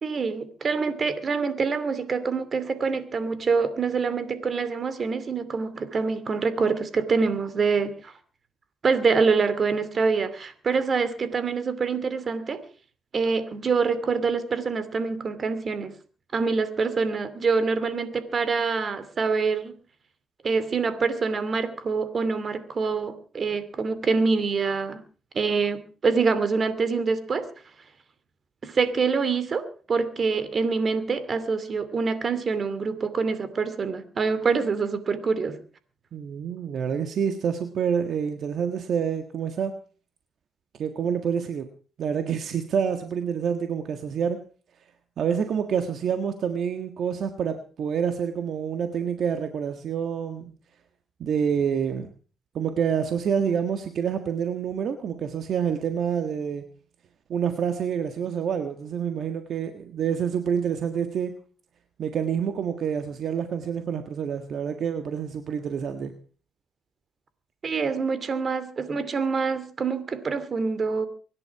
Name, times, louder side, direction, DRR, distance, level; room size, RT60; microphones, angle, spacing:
voice 1, 0.0-8.1 8.8-12.6 13.1-15.9 16.3-19.8 20.4-25.0 25.3-27.5 28.6-35.6 67.6-71.1, right 4 dB, 45° right, 13 dB, 2.5 m, -25 dB
voice 2, 36.1-39.7 40.8-41.7 42.0-44.4 45.2-50.5 51.2-52.1 52.5-56.6 57.3-61.3 62.0-66.1, right 7 dB, 65° right, 7 dB, 1.6 m, -27 dB
24.5 x 11.0 x 4.7 m, 0.39 s
cardioid pair, 90°, 0 cm